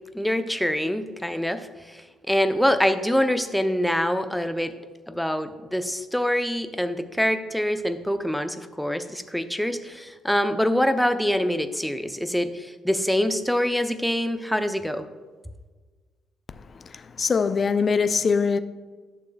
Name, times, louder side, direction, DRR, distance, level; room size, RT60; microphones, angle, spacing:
voice 1, 0.1-2.0 2.3-4.7 5.1-15.0, equal, 5° left, 0.7 m, -25 dB
voice 2, 16.9-18.6, left 5 dB, 40° left, 0.5 m, -22 dB
11.5 x 6.8 x 2.4 m
figure-of-eight pair, 45°, 0 cm